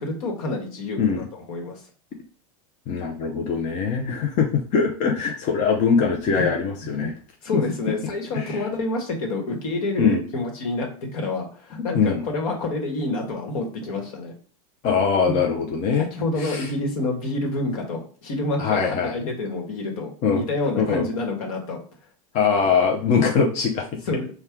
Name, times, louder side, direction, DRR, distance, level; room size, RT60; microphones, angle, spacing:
voice 1, 0.0-1.8 6.3-6.5 6.8-7.1 7.4-14.3 15.3-15.5 16.1-21.8 22.6-22.7 24.1-24.3, left 2 dB, 70° left, 2 dB, 1.4 m, -28 dB
voice 2, 2.9-7.1 7.5-7.6 7.9-8.0 8.3-8.6 10.0-10.2 11.9-12.2 14.8-16.1 16.4-16.7 18.6-19.1 20.2-20.4 20.8-21.1 22.3-23.9, left 5 dB, 40° left, 1 dB, 0.7 m, -22 dB
4.3 x 2.3 x 3.6 m, 0.43 s
supercardioid pair, 130°, 18 cm